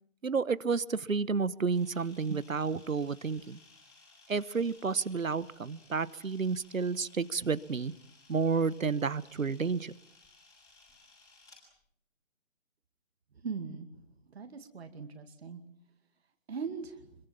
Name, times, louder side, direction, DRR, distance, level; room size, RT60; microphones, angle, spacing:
voice 1, 0.2-3.6 4.3-7.9 8.3-9.9, right 5 dB, 80° right, 18 dB, 1.2 m, -31 dB
Camera, 1.7-11.6, left 3 dB, 10° left, 5.7 m, -60 dB
voice 2, 13.4-13.9 14.3-15.6 16.5-17.1, right 5 dB, 50° right, 6 dB, 2.4 m, -40 dB
26.0 x 22.5 x 7.4 m, 0.66 s
figure-of-eight pair, 150°, 40 cm